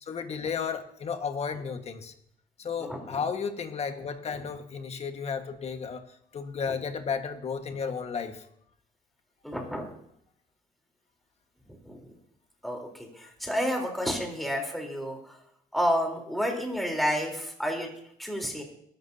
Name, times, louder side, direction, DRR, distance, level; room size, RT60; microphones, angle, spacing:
voice 1, 0.0-2.1 2.6-6.0 6.3-8.4, left 6 dB, 40° left, 6 dB, 1.5 m, -33 dB
voice 2, 2.8-3.2 6.7-6.8 9.4-9.9 11.8-12.1 12.6-15.4 15.7-17.9 18.2-18.6, equal, ahead, 0 dB, 3.7 m, -30 dB
21.5 x 11.5 x 2.8 m, 0.71 s
cardioid pair, 110°, 17 cm